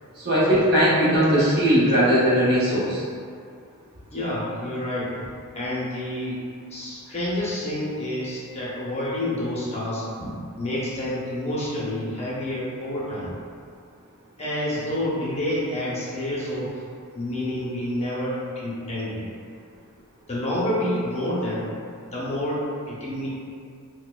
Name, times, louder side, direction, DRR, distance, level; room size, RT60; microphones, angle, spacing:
voice 1, 0.2-3.0, equal, 50° right, -9 dB, 0.9 m, -19 dB
voice 2, 4.1-5.1 5.5-6.4 6.7-10.0 10.6-13.3 14.4-16.7 17.1-19.2 20.3-21.7 22.1-22.6 22.9-23.4, left 1 dB, 30° left, -7 dB, 0.6 m, -28 dB
4.2 x 2.1 x 2.3 m, 2.3 s
head